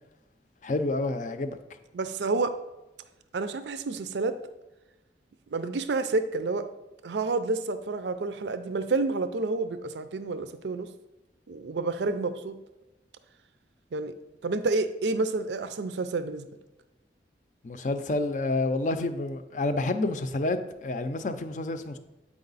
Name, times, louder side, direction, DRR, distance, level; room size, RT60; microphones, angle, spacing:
voice 1, 0.6-1.6 17.6-22.0, left 2 dB, 45° left, 0.5 m, -29 dB
voice 2, 1.9-2.6 3.3-4.4 5.5-6.7 7.0-10.9 11.5-12.6 13.9-14.2 14.4-16.5, right 3 dB, 80° right, 0.5 m, -29 dB
8.5 x 4.8 x 4.0 m
head